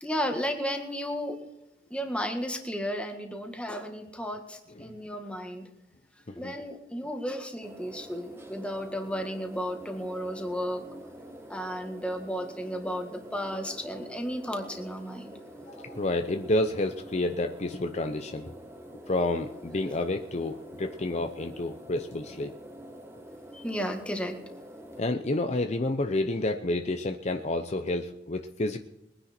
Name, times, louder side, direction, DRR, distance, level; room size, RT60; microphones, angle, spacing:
voice 1, 0.0-1.4 1.9-5.7 6.3-10.8 11.5-15.3 23.5-24.4, equal, 5° left, 4 dB, 1.7 m, -33 dB
sound 1, 7.6-25.0, equal, 15° right, 1.5 m, -46 dB
voice 2, 15.7-18.5 19.1-22.5 25.0-28.8, left 2 dB, 40° left, 6 dB, 0.7 m, -29 dB
21.5 x 10.0 x 4.4 m, 0.94 s
head